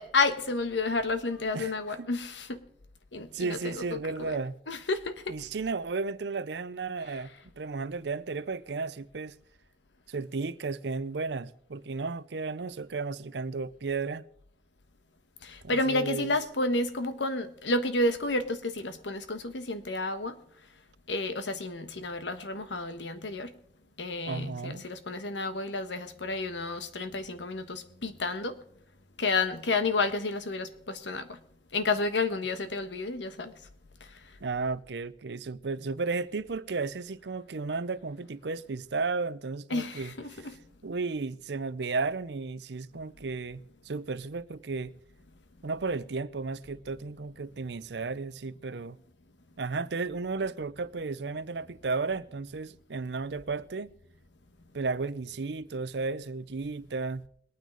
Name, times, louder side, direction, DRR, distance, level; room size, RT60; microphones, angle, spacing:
voice 1, 0.0-2.6 3.1-4.4 4.7-5.4 15.4-20.4 21.1-23.5 24.0-28.6 29.2-31.4 31.7-33.5 39.7-40.6, left 3 dB, 90° left, 1.3 m, -31 dB
voice 2, 1.5-2.1 3.3-4.5 5.3-7.3 7.6-9.4 10.1-14.3 15.6-16.3 24.2-24.9 34.4-40.6 40.8-44.9 45.6-49.0 49.6-53.9 54.7-57.2, right 4 dB, 70° right, 0.6 m, -34 dB
21.5 x 9.3 x 3.9 m
head